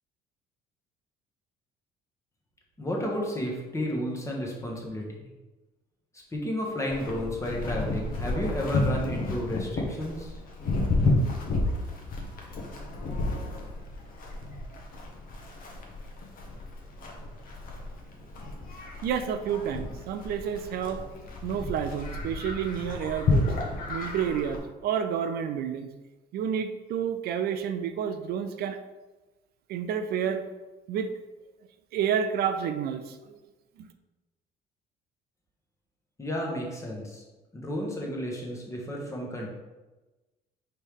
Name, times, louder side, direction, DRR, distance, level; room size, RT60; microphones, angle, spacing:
voice 1, 2.8-5.3 6.3-10.4 36.2-37.2 37.5-39.5, equal, 15° left, -1 dB, 1.0 m, -32 dB
Livestock farm animals working animals, 6.9-24.6, left 2 dB, 55° left, 0.9 m, -31 dB
voice 2, 19.0-21.0 21.4-23.5 23.9-25.9 26.3-28.8 29.7-30.4 30.9-31.1 31.9-33.4, right 8 dB, 65° right, 8 dB, 0.4 m, -30 dB
4.3 x 3.2 x 3.5 m, 1.2 s
cardioid pair, 110°, 17 cm